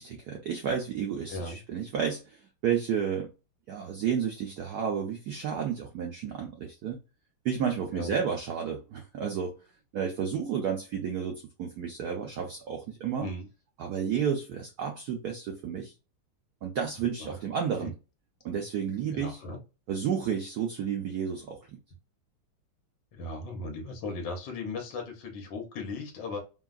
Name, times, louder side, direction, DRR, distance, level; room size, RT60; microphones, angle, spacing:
voice 1, 0.0-3.3 3.7-7.0 7.4-9.6 9.9-13.3 13.8-15.9 16.6-17.9 18.4-19.4 19.9-21.8, right 7 dB, 80° right, 0.8 m, -31 dB
voice 2, 19.1-19.6 23.1-26.4, left 3 dB, 65° left, 1.5 m, -37 dB
3.5 x 2.2 x 2.4 m
omnidirectional pair, 2.3 m